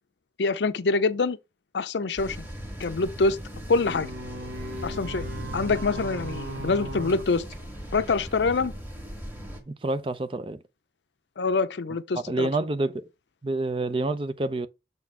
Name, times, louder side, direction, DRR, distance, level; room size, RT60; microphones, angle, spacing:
voice 1, 0.4-1.4 1.7-2.5 2.8-3.4 3.7-4.1 4.8-5.2 5.5-7.5 7.9-8.7 11.4-12.5, left 3 dB, 85° left, 0.6 m, -25 dB
sound 1, 2.2-9.6, equal, 10° right, 1.9 m, -38 dB
sound 2, 3.7-8.2, right 2 dB, 85° right, 1.0 m, -39 dB
voice 2, 9.7-10.6 12.2-13.0 13.4-14.7, right 2 dB, 30° right, 0.5 m, -28 dB
6.9 x 4.2 x 4.4 m
head